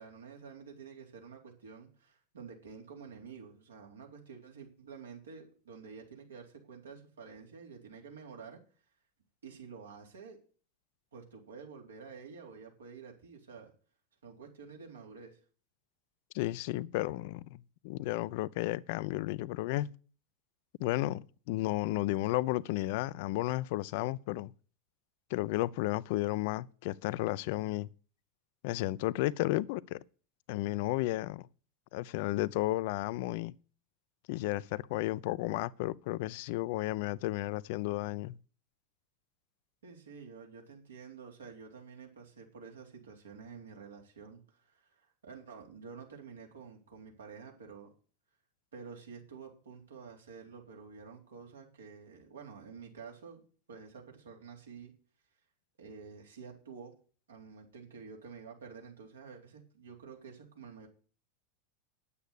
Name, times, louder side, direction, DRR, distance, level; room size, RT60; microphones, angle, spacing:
voice 1, 0.0-8.6 9.4-10.4 11.1-13.7 14.2-15.4 39.8-47.9 48.7-53.4 53.7-54.9 55.8-56.9 57.3-60.9, right 5 dB, 75° right, 4.0 m, -49 dB
voice 2, 16.3-19.9 20.8-24.5 25.3-27.9 28.6-30.0 30.5-31.5 31.9-33.5 34.3-38.4, left 17 dB, 55° left, 0.5 m, -33 dB
10.0 x 8.5 x 8.5 m
figure-of-eight pair, 90°, 0 cm